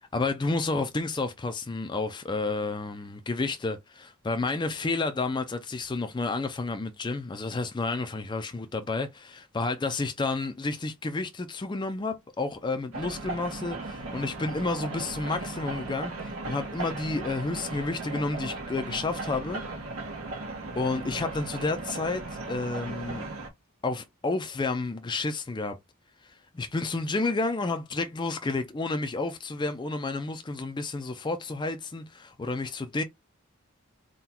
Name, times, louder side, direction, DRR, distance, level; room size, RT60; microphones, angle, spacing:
voice 1, 0.1-19.6 20.8-23.2 23.8-25.8 26.2-33.0, left 3 dB, 20° left, 0.4 m, -31 dB
sound 1, 12.9-23.5, right 2 dB, 75° right, 1.3 m, -37 dB
3.8 x 2.2 x 4.2 m
head